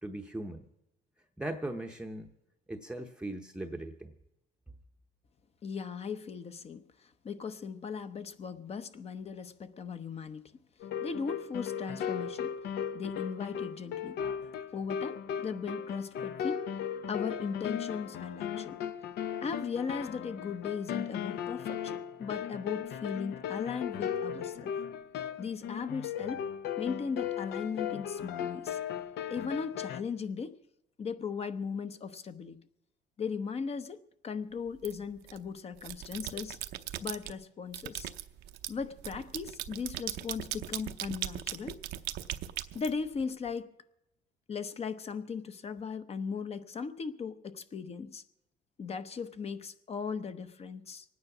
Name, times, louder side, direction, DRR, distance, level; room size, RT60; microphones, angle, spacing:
voice 1, 0.0-0.6 1.4-2.3 2.7-4.1, right 1 dB, 5° right, 2 dB, 0.8 m, -39 dB
voice 2, 5.6-10.5 11.0-12.6 12.9-14.2 14.7-16.7 17.1-18.8 19.4-24.7 25.4-26.4 26.8-28.8 29.3-30.5 31.0-32.6 33.2-36.6 37.0-38.1 38.7-41.8 42.7-43.7 44.5-48.2 48.8-51.0, left 5 dB, 35° left, 11 dB, 0.9 m, -38 dB
sound 1, 10.8-30.0, left 8 dB, 75° left, 0.8 m, -37 dB
sound 2, 34.8-35.4 35.8-37.3 37.7-43.5, right 13 dB, 80° right, 0.7 m, -39 dB
23.5 x 9.6 x 6.0 m, 0.85 s
cardioid pair, 110°, 17 cm